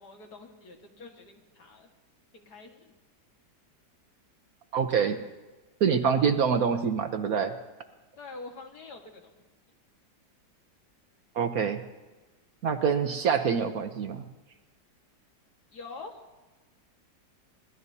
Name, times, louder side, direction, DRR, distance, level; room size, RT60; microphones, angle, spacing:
voice 1, 0.0-1.9 2.3-2.9 8.2-9.3 15.7-16.2, left 3 dB, 60° left, 2 dB, 2.2 m, -45 dB
voice 2, 4.7-5.2 5.8-7.5 11.3-11.8 12.6-14.2, right 6 dB, 60° right, 6 dB, 1.2 m, -25 dB
24.0 x 17.5 x 2.8 m, 1.2 s
omnidirectional pair, 1.9 m